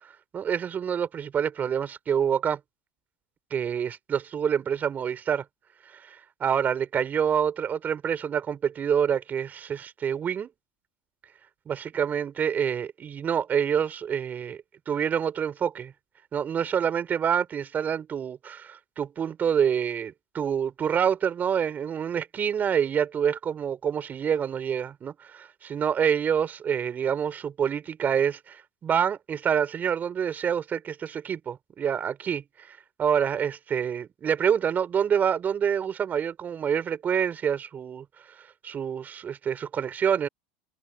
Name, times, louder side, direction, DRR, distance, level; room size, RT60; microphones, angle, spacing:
voice 1, 0.3-2.6 3.5-5.4 5.9-10.5 11.7-15.9 16.3-38.0 38.6-40.3, right 8 dB, 35° right, 4.6 m, -27 dB
hypercardioid pair, 95°, 5 cm